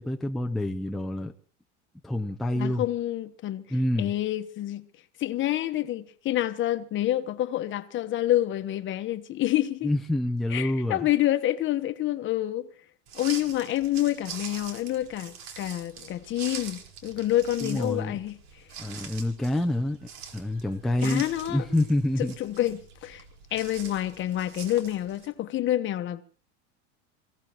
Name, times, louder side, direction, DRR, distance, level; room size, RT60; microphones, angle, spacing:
voice 1, 0.0-1.3 2.0-2.8 3.7-4.1 9.8-11.1 17.6-18.2 18.8-22.4, left 1 dB, ahead, 0.7 m, -27 dB
voice 2, 2.5-3.6 4.0-4.9 5.2-9.9 10.5-12.7 13.1-18.4 21.0-21.6 22.2-23.2 23.5-26.2, left 13 dB, 35° left, 1.2 m, -28 dB
sound 1, 13.1-25.3, right 7 dB, 60° right, 4.6 m, -44 dB
27.5 x 16.5 x 3.0 m
supercardioid pair, 140°, 35 cm